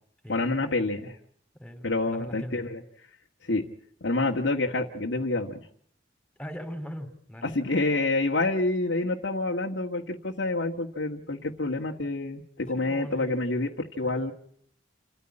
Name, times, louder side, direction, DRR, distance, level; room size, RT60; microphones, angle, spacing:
voice 1, 0.3-1.2 1.8-2.8 3.4-3.6 4.0-5.6 7.4-14.3, left 2 dB, 70° left, 0 dB, 1.6 m, -28 dB
voice 2, 1.6-2.7 6.4-7.5 12.8-13.4 14.0-14.3, equal, 5° left, 8 dB, 3.3 m, -40 dB
28.5 x 14.0 x 9.9 m, 0.65 s
head